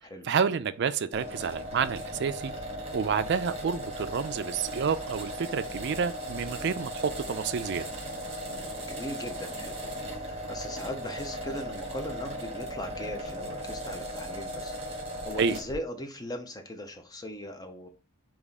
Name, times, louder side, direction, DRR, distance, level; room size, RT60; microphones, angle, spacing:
voice 1, 0.2-2.5 2.9-7.9 15.4-15.6, right 6 dB, 55° right, 0.4 m, -29 dB
sound 1, 1.1-15.8, equal, 30° right, 1.2 m, -37 dB
voice 2, 8.4-17.9, equal, 20° left, 0.7 m, -40 dB
3.6 x 3.0 x 4.0 m
head